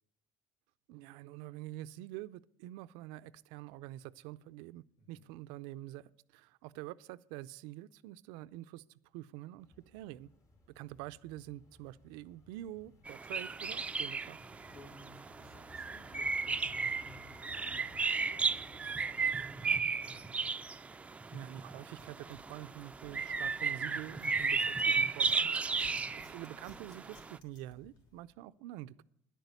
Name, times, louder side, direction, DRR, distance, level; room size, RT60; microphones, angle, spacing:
voice 1, 0.9-10.3 10.7-14.4 21.3-29.0, right 15 dB, 90° right, 16 dB, 0.4 m, -47 dB
voice 2, 5.0-5.3 12.8-12.9 14.7-20.3 25.7-26.2, left 2 dB, 85° left, -2 dB, 2.8 m, -58 dB
sound 1, 9.6-25.9, left 2 dB, 40° left, 2.3 m, -61 dB
sound 2, 13.1-27.4, right 4 dB, 15° right, 0.4 m, -35 dB
sound 3, 22.0-28.3, left 2 dB, 65° left, 3.3 m, -61 dB
10.5 x 9.1 x 8.2 m, 0.76 s
cardioid pair, 120°, 8 cm